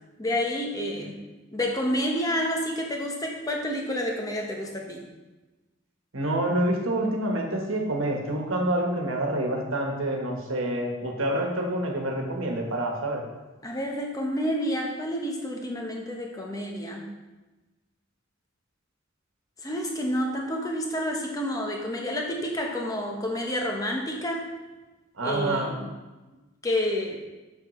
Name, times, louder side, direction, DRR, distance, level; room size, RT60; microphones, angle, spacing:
voice 1, 0.2-1.2 1.5-5.1 13.6-17.1 19.6-24.5 25.2-25.9 26.6-27.2, equal, 15° left, 0 dB, 0.9 m, -29 dB
voice 2, 6.1-13.2 25.2-25.7, right 1 dB, 85° right, 1 dB, 1.3 m, -27 dB
7.3 x 6.8 x 3.1 m, 1.2 s
head